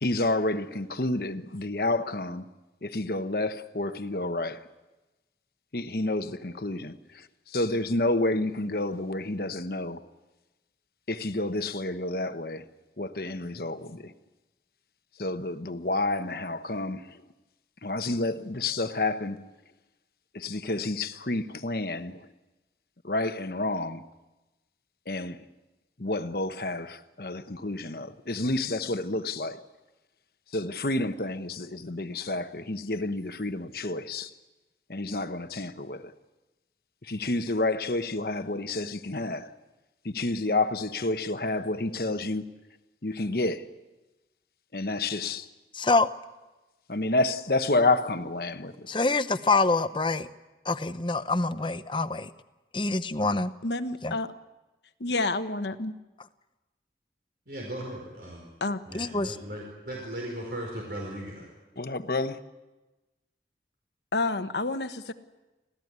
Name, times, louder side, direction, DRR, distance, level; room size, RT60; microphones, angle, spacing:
voice 1, 0.0-2.5 2.8-4.7 5.7-10.1 11.1-12.7 13.0-14.1 15.2-17.2 17.8-19.5 20.3-22.3 23.0-24.1 25.1-25.4 26.0-29.6 30.5-34.3 34.9-36.1 37.0-39.5 40.0-42.5 43.0-43.7 44.7-45.5 46.9-48.9 61.8-62.4, left 2 dB, 55° left, 1.1 m, -29 dB
voice 2, 45.8-46.1 48.9-50.3 50.7-52.3 52.7-53.5 54.0-54.1 58.9-59.4, left 3 dB, 25° left, 0.8 m, -25 dB
voice 3, 53.6-54.3 55.0-55.9 58.6-58.8 64.1-65.1, left 2 dB, 75° left, 1.2 m, -29 dB
voice 4, 57.5-58.5 58.8-61.5, right 1 dB, 60° right, 4.7 m, -37 dB
26.0 x 16.0 x 9.6 m
head